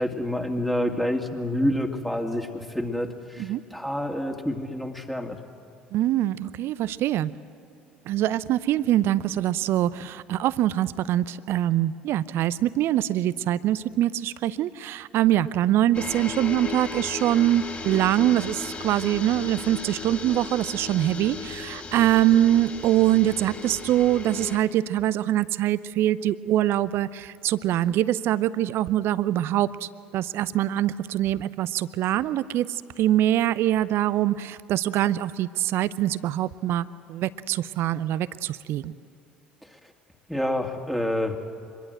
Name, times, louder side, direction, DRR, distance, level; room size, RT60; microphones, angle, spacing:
voice 1, 0.0-5.4 39.6-39.9 40.3-41.4, left 1 dB, 5° left, 3 dB, 2.3 m, -28 dB
voice 2, 5.9-7.3 8.1-38.9, right 13 dB, 55° right, 17 dB, 0.7 m, -24 dB
sound 1, 15.9-24.6, left 5 dB, 30° left, 3.5 m, -36 dB
25.0 x 21.5 x 7.9 m, 2.3 s
figure-of-eight pair, 60°, 5 cm